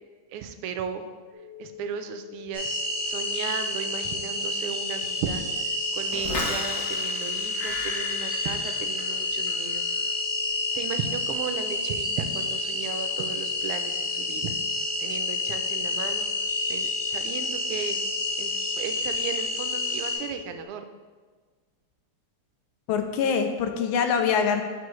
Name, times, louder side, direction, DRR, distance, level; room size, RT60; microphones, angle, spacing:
voice 1, 0.3-1.1 1.6-2.7 3.0-10.0 10.7-14.5 15.0-16.3 16.7-18.0 18.4-20.8, right 7 dB, 85° right, 8 dB, 1.5 m, -35 dB
sound 1, 1.3-20.6, left 11 dB, 35° left, 1.2 m, -45 dB
sound 2, 2.5-20.1, left 2 dB, 25° right, 2.4 m, -29 dB
sound 3, 6.1-9.2 9.5-9.9, left 3 dB, 55° left, 1.2 m, -34 dB
voice 2, 22.9-24.6, left 6 dB, 75° left, 6 dB, 1.3 m, -24 dB
12.5 x 4.2 x 3.1 m, 1.5 s
omnidirectional pair, 2.4 m